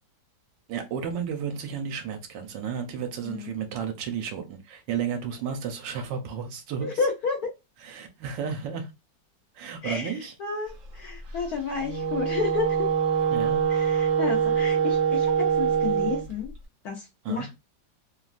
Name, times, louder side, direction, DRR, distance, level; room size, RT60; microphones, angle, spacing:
voice 1, 0.7-6.9 7.8-8.9 9.5-10.3 11.3-11.4 13.3-13.6 17.2-17.5, right 7 dB, 75° right, 1.2 m, -32 dB
voice 2, 6.8-7.5 9.8-12.9 13.7-16.5 16.8-17.5, left 5 dB, 70° left, 1.0 m, -31 dB
Wind instrument woodwind instrument, 11.7-16.3, right 7 dB, 55° right, 0.9 m, -24 dB
3.2 x 2.2 x 2.4 m
omnidirectional pair, 2.0 m